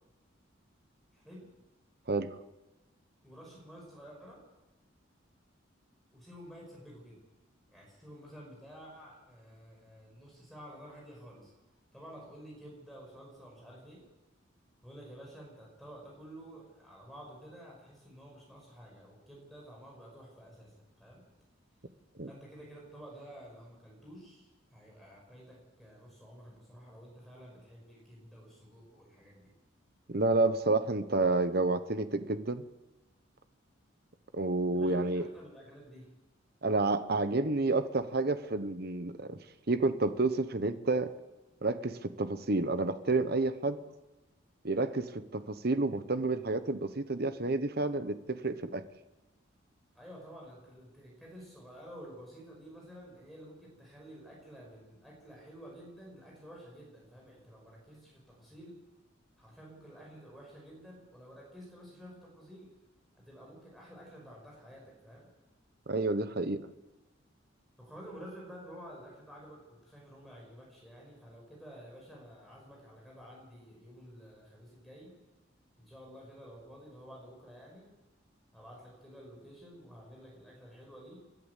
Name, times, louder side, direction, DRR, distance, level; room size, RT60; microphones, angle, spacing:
voice 1, 1.1-1.5 3.2-4.4 6.1-7.2 7.7-11.5 11.9-14.0 14.8-21.2 22.2-29.5 34.6-36.1 49.9-58.8 59.4-62.7 63.1-65.3 67.8-75.2 75.8-77.9 78.5-81.2, equal, ahead, -3 dB, 5.6 m, -51 dB
voice 2, 30.1-32.6 34.3-35.3 36.6-39.4 39.7-41.1 41.6-43.8 44.6-48.8 65.9-66.6, right 2 dB, 50° right, 11 dB, 1.0 m, -30 dB
29.5 x 11.0 x 8.3 m, 1.1 s
head